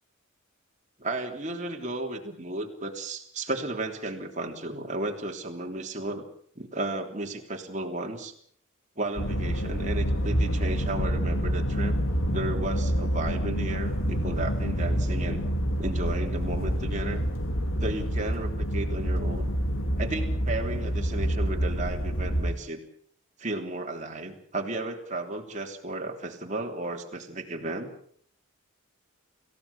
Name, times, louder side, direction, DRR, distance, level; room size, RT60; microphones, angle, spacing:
voice 1, 1.0-6.3 6.5-8.3 8.9-11.9 12.3-15.4 15.8-17.2 17.8-19.5 20.0-22.8 23.4-27.9, right 2 dB, 35° right, 2 dB, 3.4 m, -34 dB
sound 1, 9.2-22.5, equal, 65° left, 2.3 m, -27 dB
28.0 x 16.0 x 7.1 m, 0.62 s
head